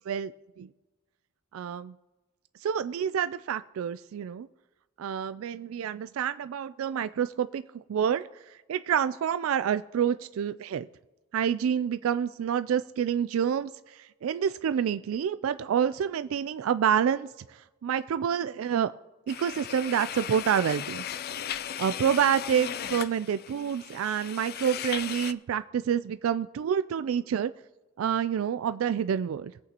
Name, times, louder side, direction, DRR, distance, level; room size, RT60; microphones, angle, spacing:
voice 1, 1.5-1.9 2.6-4.5 5.0-10.9 11.3-18.9 19.3-21.0 21.8-27.5 28.0-29.5, right 8 dB, 80° right, 13 dB, 0.3 m, -28 dB
sound 1, 19.3-25.3, left 9 dB, 50° left, 0.4 m, -37 dB
21.5 x 8.4 x 2.9 m, 1.1 s
head